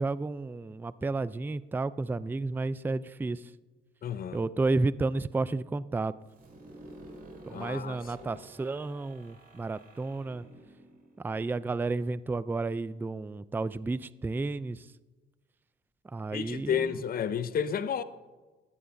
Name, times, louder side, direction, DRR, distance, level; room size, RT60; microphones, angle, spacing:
voice 1, 0.0-3.4 4.3-6.1 7.5-10.4 11.2-14.9 16.1-17.0, right 3 dB, 10° right, 0.3 m, -32 dB
voice 2, 4.0-4.4 7.5-8.4 16.3-18.0, left 8 dB, 50° left, 0.7 m, -32 dB
sound 1, 6.2-11.9, right 2 dB, 45° right, 4.5 m, -51 dB
18.5 x 13.5 x 2.6 m
cardioid pair, 90°, 20 cm